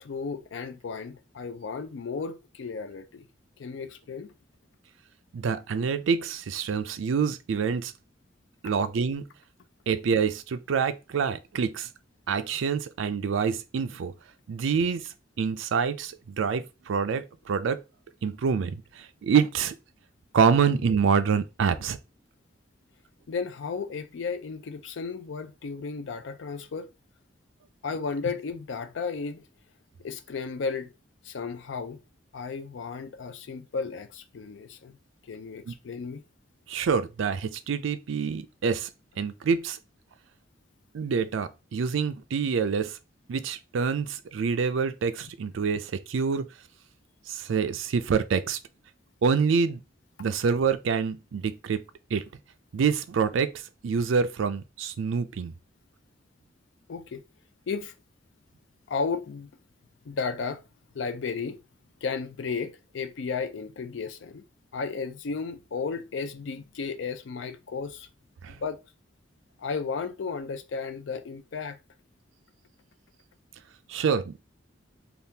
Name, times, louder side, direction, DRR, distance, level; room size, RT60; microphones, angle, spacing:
voice 1, 0.0-3.2 3.6-4.3 8.6-8.7 23.3-26.9 27.8-29.4 30.0-30.9 31.2-32.0 32.3-35.0 35.3-36.2 56.9-57.2 57.7-57.9 58.9-59.5 60.1-60.6 60.9-61.6 62.0-64.4 64.7-68.1 68.5-68.8 69.6-71.8, left 5 dB, 70° left, 0.4 m, -34 dB
voice 2, 5.3-7.9 8.6-9.3 9.9-11.9 12.3-14.1 14.5-17.8 18.2-19.7 20.3-22.0 35.7-35.8 36.7-38.9 39.2-39.8 40.9-43.0 43.3-46.5 47.3-48.6 49.2-49.8 50.2-51.8 52.1-52.2 52.7-53.5 53.8-55.5 68.4-68.6 73.9-74.3, right 6 dB, 80° right, 0.4 m, -26 dB
3.5 x 2.4 x 2.7 m
head